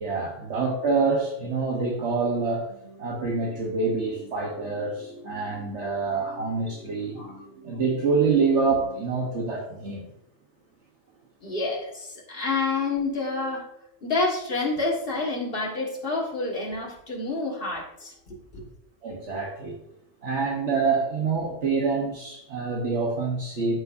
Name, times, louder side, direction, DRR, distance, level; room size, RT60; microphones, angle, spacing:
voice 1, 0.0-2.7 3.0-7.2 7.6-10.1 19.0-19.8 20.2-23.8, right 4 dB, 65° right, -2 dB, 1.4 m, -26 dB
sound 1, 2.7-9.9, right 1 dB, 90° right, 1.7 m, -46 dB
voice 2, 11.4-13.7 14.0-18.6, left 3 dB, 50° left, -1 dB, 2.0 m, -28 dB
14.0 x 5.4 x 2.6 m, 0.80 s
omnidirectional pair, 1.3 m